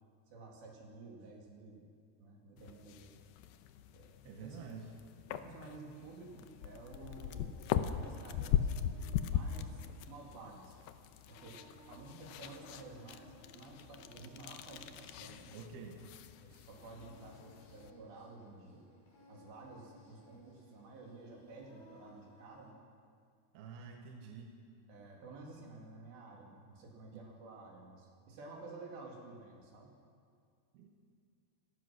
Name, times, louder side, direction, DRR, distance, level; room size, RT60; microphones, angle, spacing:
voice 1, 0.3-1.9 2.2-3.2 3.9-4.7 5.3-8.7 9.3-10.8 11.3-15.6 16.4-18.9 19.3-22.8 24.9-29.9, right 3 dB, 85° right, -1 dB, 5.1 m, -52 dB
sound 1, 2.6-17.9, left 9 dB, 80° left, 2.3 m, -40 dB
voice 2, 4.2-4.9 15.5-16.1 23.5-24.6 27.1-27.3 30.7-31.0, right 5 dB, 70° right, 1 dB, 3.3 m, -49 dB
Singing, 6.1-22.7, left 1 dB, 60° left, 8.0 m, -62 dB
26.0 x 16.5 x 6.1 m, 2.3 s
omnidirectional pair, 4.8 m